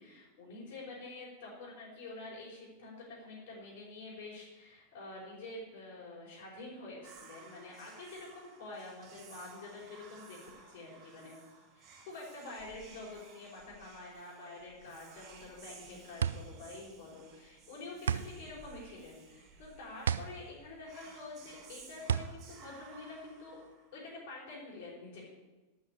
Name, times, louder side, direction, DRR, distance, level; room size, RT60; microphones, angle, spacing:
voice 1, 0.0-11.4 11.7-23.6 23.9-25.3, left 2 dB, 45° left, -6 dB, 4.9 m, -47 dB
Whispering, 7.0-24.2, right 5 dB, 30° right, 2.3 m, -57 dB
sound 1, 15.4-23.7, right 8 dB, 65° right, 0.5 m, -36 dB
12.0 x 5.9 x 8.8 m, 1.2 s
figure-of-eight pair, 90°, 0 cm